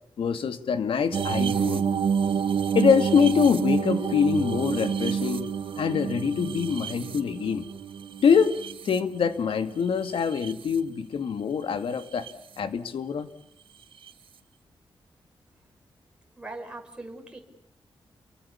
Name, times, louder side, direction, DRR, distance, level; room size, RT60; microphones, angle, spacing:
voice 1, 0.2-1.8 2.7-5.5 5.8-7.7 8.2-12.3 12.6-13.3, left 6 dB, 75° left, 10 dB, 2.1 m, -24 dB
sound 1, 1.1-9.4 10.0-10.8 12.0-12.3 14.1-14.2, right 7 dB, 70° right, 1.9 m, -28 dB
voice 2, 16.4-17.4, right 2 dB, 10° right, 2 dB, 5.7 m, -40 dB
30.0 x 24.0 x 7.0 m, 0.73 s
wide cardioid pair, 130°, 9 cm